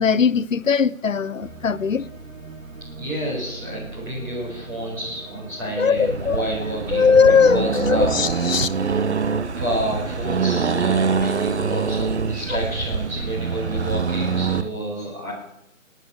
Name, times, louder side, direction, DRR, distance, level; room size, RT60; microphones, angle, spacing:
voice 1, 0.0-2.0 5.8-6.4 6.9-8.7, left 6 dB, 70° left, 0.9 m, -19 dB
sound 1, 1.4-13.6, right 3 dB, 70° right, 2.2 m, -40 dB
voice 2, 3.0-8.9 9.5-15.3, right 1 dB, 5° right, 4.5 m, -30 dB
Accelerating revving vroom, 6.0-14.7, right 5 dB, 55° right, 0.9 m, -24 dB
19.5 x 9.2 x 7.0 m
figure-of-eight pair, 170°, 41 cm